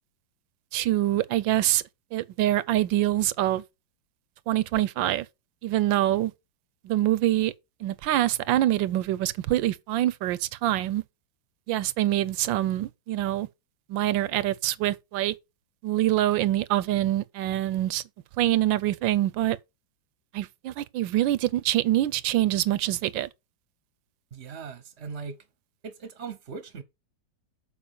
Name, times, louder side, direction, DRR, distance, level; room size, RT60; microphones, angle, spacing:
voice 1, 0.7-1.8 2.1-3.6 4.5-5.3 5.6-6.3 6.8-7.5 7.8-11.0 11.7-13.5 13.9-15.3 15.8-18.0 18.4-19.6 20.3-23.3, right 14 dB, 80° right, 1.3 m, -25 dB
voice 2, 24.3-25.4 25.8-26.8, right 5 dB, 45° right, 0.9 m, -39 dB
7.1 x 4.8 x 6.6 m
omnidirectional pair, 2.1 m